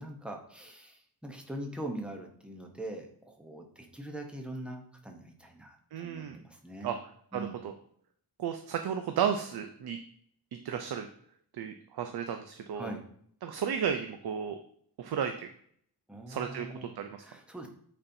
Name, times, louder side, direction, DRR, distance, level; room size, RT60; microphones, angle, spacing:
voice 1, 0.0-7.0 7.3-7.6 12.7-13.0 16.1-16.9 17.2-17.7, right 1 dB, 5° right, 2 dB, 0.8 m, -42 dB
voice 2, 5.9-6.4 6.8-6.9 7.3-7.7 8.4-10.0 10.6-11.1 11.5-12.9 13.4-14.6 15.0-15.4 16.3-17.3, right 8 dB, 70° right, 6 dB, 0.5 m, -33 dB
8.6 x 4.3 x 2.7 m, 0.63 s
wide cardioid pair, 165°, 40 cm